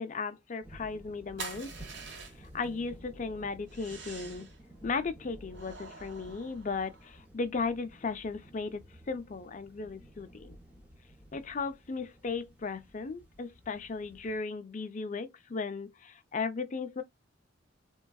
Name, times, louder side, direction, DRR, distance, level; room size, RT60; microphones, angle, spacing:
voice 1, 0.0-1.7 2.4-4.5 4.8-10.5 11.3-17.0, left 4 dB, 40° left, 0.4 m, -36 dB
sound 1, 0.6-14.4, right 1 dB, 5° right, 0.9 m, -53 dB
sound 2, 1.4-2.6 3.7-4.6 5.5-7.2, right 4 dB, 60° right, 0.9 m, -46 dB
3.7 x 2.3 x 2.2 m
head